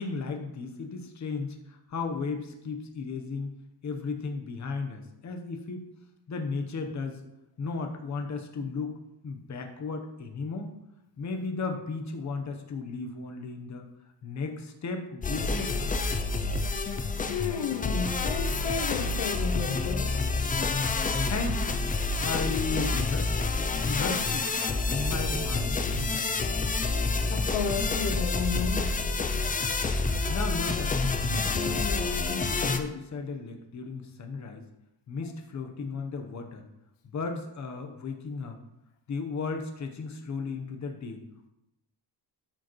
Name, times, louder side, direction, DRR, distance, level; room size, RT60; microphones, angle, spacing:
voice 1, 0.0-3.5 3.8-5.9 6.3-7.2 7.6-8.9 9.2-10.7 11.2-13.9 14.2-15.8 21.2-21.8 22.2-24.5 24.9-26.4 30.3-31.0 31.3-34.6 35.1-36.6 37.0-38.6 39.1-41.2, left 4 dB, 40° left, 1.0 m, -35 dB
sound 1, 15.2-32.8, left 3 dB, 20° left, 0.5 m, -28 dB
voice 2, 17.2-20.2 27.3-29.0, left 6 dB, 80° left, 0.7 m, -32 dB
12.5 x 4.9 x 3.1 m
cardioid pair, 155°, 43 cm